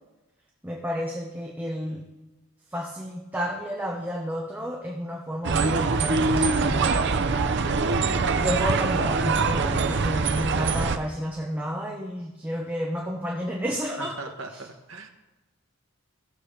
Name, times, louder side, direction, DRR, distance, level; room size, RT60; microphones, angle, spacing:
voice 1, 0.6-2.0 2.7-7.0 8.1-14.2 14.5-14.6, equal, 10° right, -1 dB, 0.9 m, -31 dB
sound 1, 5.4-11.0, right 4 dB, 60° right, 0.7 m, -23 dB
voice 2, 14.0-15.1, right 3 dB, 75° right, 4 dB, 1.3 m, -39 dB
17.5 x 7.0 x 3.3 m, 1.1 s
head